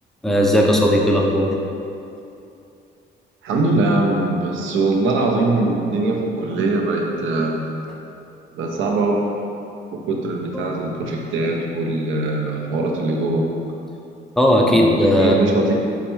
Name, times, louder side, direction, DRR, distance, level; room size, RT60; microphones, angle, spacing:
voice 1, 0.2-1.5 10.5-10.7 14.4-15.6, equal, ahead, -1 dB, 0.4 m, -17 dB
voice 2, 3.4-7.6 8.5-9.3 9.9-13.5 14.7-15.7, right 2 dB, 75° right, 0 dB, 0.5 m, -22 dB
3.9 x 2.3 x 3.0 m, 2.7 s
cardioid pair, 90°, 20 cm